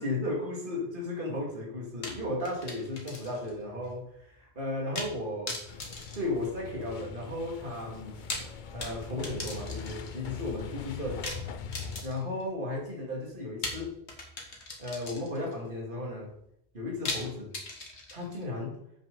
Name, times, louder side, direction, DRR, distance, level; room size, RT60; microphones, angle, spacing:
voice 1, 0.0-5.6 6.1-8.2 8.7-11.3 12.0-13.9 14.8-16.3 16.7-17.5 18.1-18.8, left 1 dB, 50° right, -2 dB, 2.6 m, -35 dB
sound 1, 2.0-3.5 3.8-3.9 4.9-5.2 5.5-7.0 8.0-10.2 11.2-12.4 13.6-15.5 17.0-18.4, left 2 dB, 90° left, 1.9 m, -39 dB
sound 2, 5.7-12.0, left 6 dB, 55° left, 0.7 m, -42 dB
7.9 x 6.0 x 5.4 m, 0.75 s
omnidirectional pair, 1.1 m